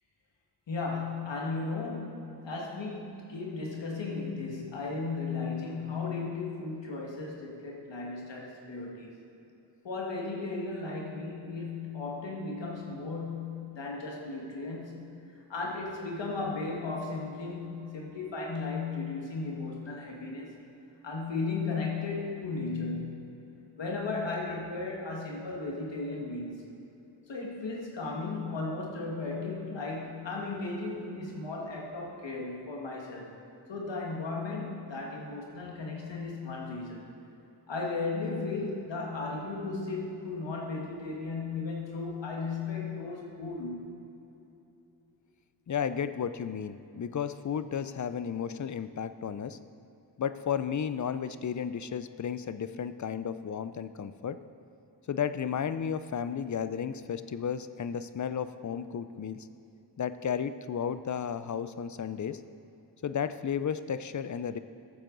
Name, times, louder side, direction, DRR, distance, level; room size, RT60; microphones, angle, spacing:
voice 1, 0.7-9.1 9.8-15.0 15.5-20.6 21.0-23.2 23.8-26.7 27.3-33.3 33.7-37.0 37.7-43.9, left 3 dB, 85° left, -1 dB, 1.8 m, -35 dB
voice 2, 45.7-49.6 50.2-54.4 55.1-59.5 60.0-62.4 63.0-64.6, left 7 dB, 45° left, 13 dB, 0.5 m, -33 dB
14.0 x 7.7 x 3.9 m, 2.8 s
cardioid pair, 55°, 43 cm